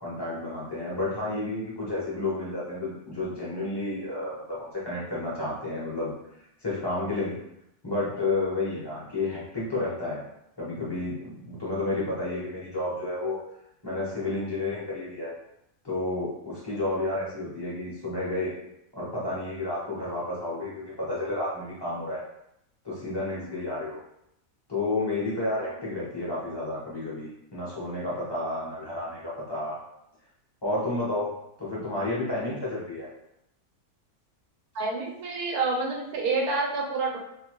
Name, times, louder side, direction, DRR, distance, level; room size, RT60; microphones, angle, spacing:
voice 1, 0.0-6.1 6.6-7.4 7.8-10.2 10.6-13.4 13.8-15.3 15.8-18.5 18.9-22.2 22.8-24.0 24.7-29.8 30.6-31.3 31.6-33.1, left 2 dB, 20° left, -7 dB, 0.7 m, -31 dB
voice 2, 34.7-37.2, right 3 dB, 80° right, 0 dB, 1.1 m, -28 dB
2.8 x 2.2 x 2.9 m, 0.80 s
omnidirectional pair, 1.6 m